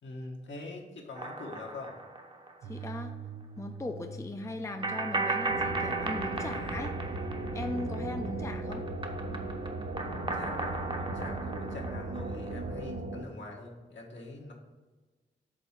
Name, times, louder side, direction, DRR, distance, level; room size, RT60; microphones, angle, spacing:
voice 1, 0.0-2.0 9.9-14.5, left 2 dB, 65° left, -1 dB, 1.4 m, -44 dB
sound 1, 1.1-2.8 3.1-3.2 4.8-8.3 8.6-12.8, right 3 dB, 25° right, 0.9 m, -36 dB
voice 2, 2.6-3.2 3.6-7.0 7.5-8.9, left 2 dB, 15° left, 5 dB, 0.6 m, -38 dB
sound 2, 2.6-8.6, right 4 dB, 85° right, 0.5 m, -46 dB
sound 3, 5.5-13.2, right 2 dB, 60° right, 0.9 m, -37 dB
5.1 x 3.7 x 5.8 m, 1.3 s
cardioid pair, 45°, 20 cm